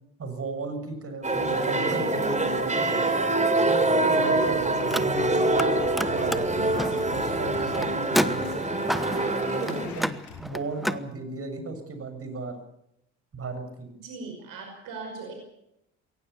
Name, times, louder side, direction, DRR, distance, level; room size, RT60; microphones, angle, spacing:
voice 1, 0.2-2.9 3.6-4.6 4.9-12.5 13.3-13.9, right 3 dB, 40° right, 8 dB, 7.0 m, -36 dB
sound 1, 1.2-9.9, right 2 dB, 20° right, 3.9 m, -25 dB
sound 2, 4.1-10.5, left 5 dB, 80° left, 6.3 m, -43 dB
Car, 4.8-5.7 5.9-11.0, equal, ahead, 1.1 m, -31 dB
voice 2, 14.0-15.3, right 4 dB, 65° right, 3 dB, 5.5 m, -39 dB
22.5 x 18.0 x 6.9 m, 0.82 s
hypercardioid pair, 60°, 35 cm